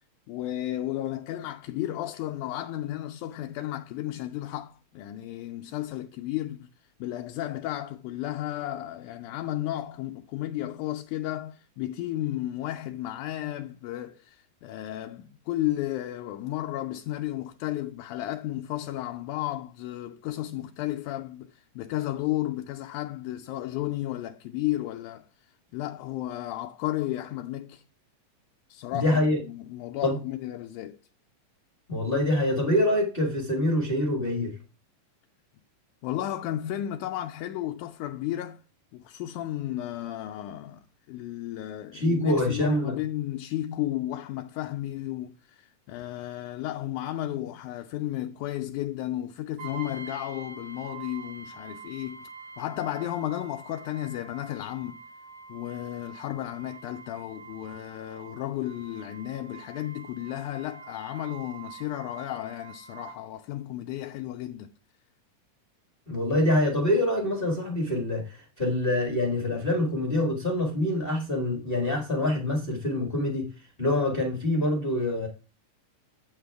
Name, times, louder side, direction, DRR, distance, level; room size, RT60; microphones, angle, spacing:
voice 1, 0.3-6.7 7.0-27.8 28.7-31.0 36.0-38.6 38.9-52.3 52.6-55.0 55.5-64.7, left 14 dB, 80° left, 1.8 m, -33 dB
voice 2, 28.9-29.4 30.0-30.2 31.9-34.6 41.9-42.9 66.1-73.5 73.8-75.3, left 1 dB, 45° left, 0.7 m, -25 dB
Brass instrument, 49.6-63.2, right 5 dB, 75° right, 4.5 m, -46 dB
8.6 x 7.8 x 3.4 m
omnidirectional pair, 3.9 m